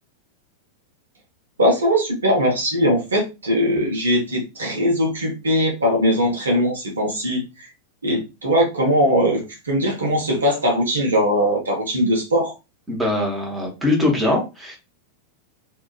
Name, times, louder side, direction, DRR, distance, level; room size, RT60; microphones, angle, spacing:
voice 1, 1.6-7.7 8.0-12.5, equal, 70° right, 0 dB, 0.9 m, -20 dB
voice 2, 12.9-14.8, left 2 dB, 10° right, -1 dB, 0.9 m, -22 dB
2.8 x 2.4 x 2.3 m, 0.26 s
figure-of-eight pair, 90°, 0 cm